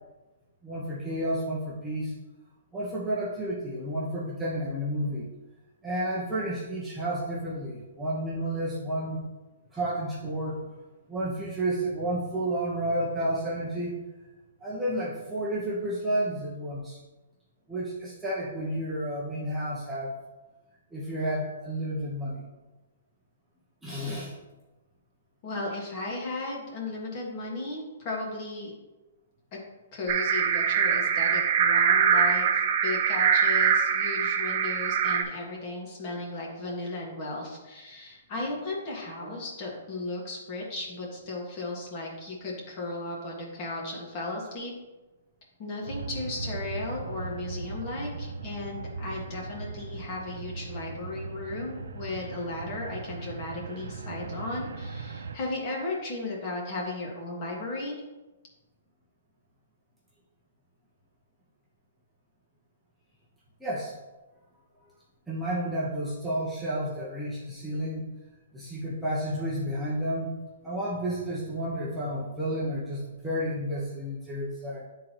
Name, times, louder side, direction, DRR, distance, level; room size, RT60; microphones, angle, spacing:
voice 1, 0.6-2.1 2.7-5.3 5.8-9.2 9.7-10.6 11.1-14.0 14.6-17.0 17.7-20.2 20.9-22.5 23.8-24.3 63.6-64.0 65.3-68.1 68.5-70.3 70.6-74.9, right 1 dB, 5° right, -8 dB, 0.9 m, -31 dB
voice 2, 25.4-28.7 29.5-29.6 29.9-44.7 45.6-58.0, left 2 dB, 30° left, -2 dB, 1.5 m, -35 dB
sound 1, 30.1-35.2, right 7 dB, 40° right, 0.6 m, -23 dB
sound 2, 45.8-55.4, right 4 dB, 85° right, 0.6 m, -38 dB
9.4 x 3.9 x 3.0 m, 1.1 s
hypercardioid pair, 160°, 0 cm